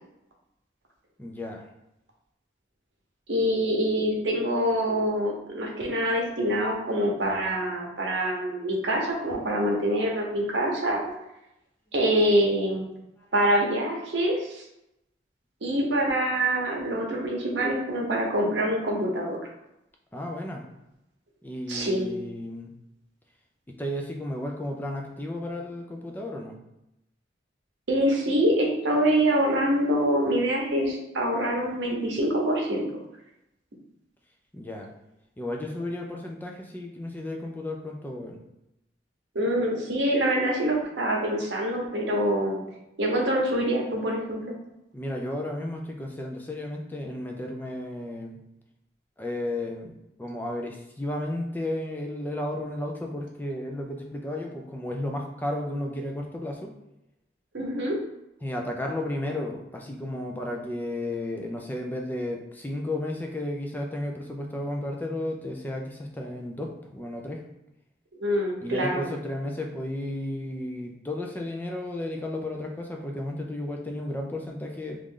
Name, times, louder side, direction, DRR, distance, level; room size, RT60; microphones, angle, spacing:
voice 1, 1.2-1.6 13.2-13.3 20.1-20.6 21.4-22.7 23.7-26.6 34.5-34.9 35.4-38.4 44.9-48.4 49.2-49.9 50.2-56.7 58.4-67.4 68.6-75.0, left 1 dB, 10° left, 1 dB, 0.4 m, -33 dB
voice 2, 3.3-11.0 11.9-12.9 13.3-14.6 15.6-19.4 21.7-22.1 27.9-32.8 39.3-42.6 43.0-44.5 57.5-58.0 68.2-69.1, right 1 dB, 75° right, -1 dB, 0.8 m, -25 dB
3.1 x 2.5 x 3.7 m, 0.87 s
head